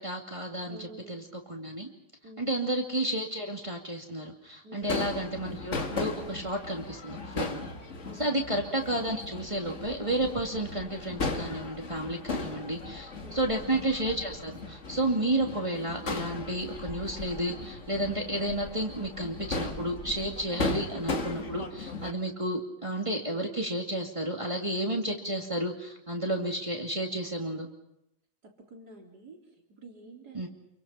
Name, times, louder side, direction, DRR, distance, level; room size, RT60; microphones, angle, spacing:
voice 1, 0.0-1.9 2.4-7.6 8.2-27.7 30.3-30.5, right 1 dB, 20° right, 0 dB, 2.6 m, -32 dB
voice 2, 0.7-1.2 2.2-2.6 4.6-5.0 8.0-8.4 13.2-13.5 28.4-30.5, right 2 dB, 70° right, 0 dB, 4.7 m, -49 dB
Crowd / Fireworks, 4.8-22.1, left 3 dB, 45° left, 2.1 m, -37 dB
28.0 x 23.5 x 5.8 m, 0.83 s
omnidirectional pair, 1.8 m